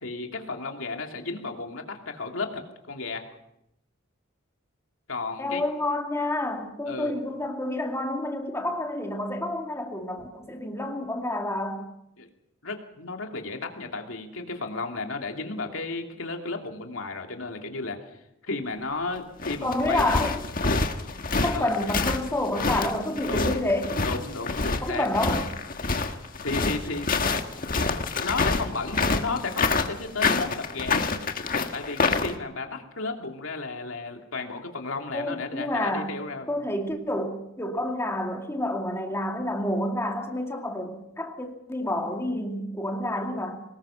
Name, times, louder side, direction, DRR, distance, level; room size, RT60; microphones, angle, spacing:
voice 1, 0.0-2.6 2.9-3.2 5.1-5.6 6.9-7.1 12.2-12.3 12.6-18.0 18.4-20.0 21.5-21.7 23.3-23.5 24.0-25.1 26.4-27.1 28.2-31.0 31.7-36.5, left 3 dB, 75° left, 2.7 m, -33 dB
voice 2, 5.4-11.9 19.6-20.5 21.4-24.0 24.8-25.5 35.1-36.2 36.5-43.6, left 1 dB, 15° left, 2.5 m, -29 dB
sound 1, 19.2-32.3, left 4 dB, 45° left, 1.5 m, -27 dB
23.5 x 20.5 x 5.8 m
head